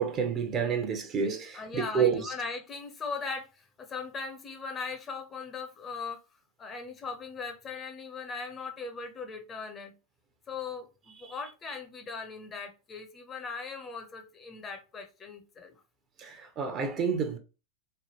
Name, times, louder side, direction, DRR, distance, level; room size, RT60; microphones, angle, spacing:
voice 1, 0.0-2.3 11.2-11.3 16.2-17.4, right 6 dB, 35° right, 0.8 m, -29 dB
voice 2, 1.5-6.2 6.6-10.0 10.5-15.8, left 4 dB, 25° left, 0.7 m, -39 dB
3.2 x 2.1 x 2.9 m
hypercardioid pair, 95°, 0 cm